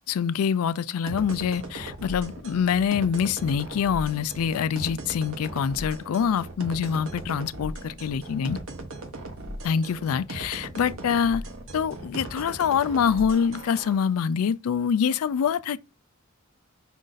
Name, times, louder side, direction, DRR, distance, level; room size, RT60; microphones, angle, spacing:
voice 1, 0.1-8.6 9.6-11.4 11.7-15.8, left 7 dB, 75° left, 0.3 m, -25 dB
sound 1, 1.1-13.9, right 2 dB, 65° right, 0.8 m, -38 dB
5.2 x 2.5 x 3.8 m
head